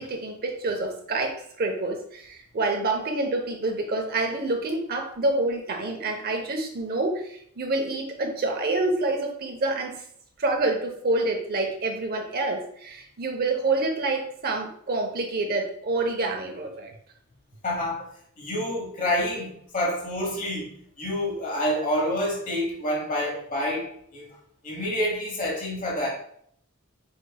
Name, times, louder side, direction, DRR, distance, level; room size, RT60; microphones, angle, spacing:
voice 1, 0.0-10.0 10.4-16.9, right 2 dB, 45° right, 3 dB, 0.7 m, -27 dB
voice 2, 17.6-18.1 18.4-24.3 24.6-26.1, left 1 dB, 40° left, -2 dB, 1.1 m, -28 dB
4.9 x 3.3 x 2.3 m, 0.66 s
head